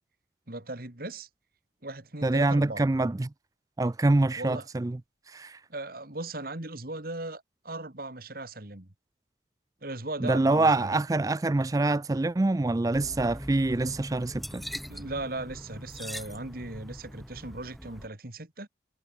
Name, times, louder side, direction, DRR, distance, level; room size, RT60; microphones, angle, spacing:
voice 1, 0.5-1.3 1.8-2.8 4.4-4.7 5.7-8.9 9.8-11.0 14.9-18.7, right 2 dB, 50° right, 2.4 m, -38 dB
voice 2, 2.2-3.3 3.8-5.0 5.3-5.6 10.2-14.6, right 2 dB, 20° right, 0.3 m, -25 dB
sound 1, 12.9-18.1, equal, ahead, 5.6 m, -42 dB
head